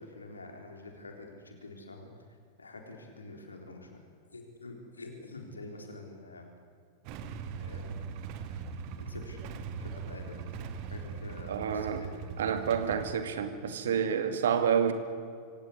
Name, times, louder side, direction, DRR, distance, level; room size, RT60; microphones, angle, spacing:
voice 1, 0.0-2.1 2.6-4.0 4.3-6.5 7.6-7.9 9.0-9.5 9.8-10.5 10.9-12.2 12.8-13.0 14.4-14.5, left 2 dB, 75° left, 3 dB, 4.0 m, -46 dB
Motorcycle / Engine starting / Idling, 7.0-13.2, right 5 dB, 45° right, 1.7 m, -40 dB
voice 2, 11.5-12.1 12.4-14.9, right 7 dB, 60° right, 9 dB, 2.2 m, -29 dB
24.5 x 16.5 x 9.9 m, 2.2 s
figure-of-eight pair, 90°, 0 cm